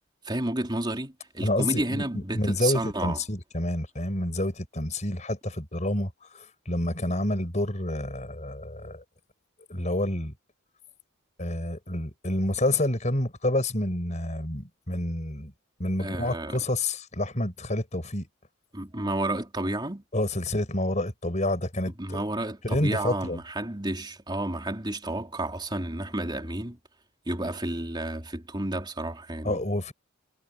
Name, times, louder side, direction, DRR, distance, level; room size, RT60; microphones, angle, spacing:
voice 1, 0.2-3.2 16.0-16.6 18.7-20.0 21.9-26.8 27.3-29.6, right 1 dB, 20° right, 3.6 m, -31 dB
voice 2, 1.4-9.0 9.7-10.3 11.4-15.5 15.8-18.3 20.1-22.2 22.6-23.4 29.4-29.9, left 1 dB, 35° left, 5.3 m, -28 dB
head